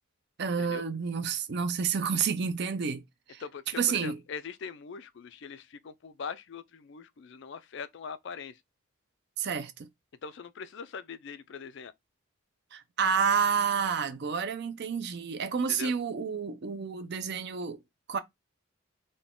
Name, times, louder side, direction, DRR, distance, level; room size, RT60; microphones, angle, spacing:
voice 1, 0.4-3.4 3.8-4.2 9.4-9.9 12.7-17.8 18.1-18.2, right 6 dB, 55° right, 0.5 m, -30 dB
voice 2, 3.4-8.6 10.2-11.9 15.7-15.9, left 6 dB, 55° left, 0.4 m, -42 dB
3.8 x 2.2 x 3.6 m
head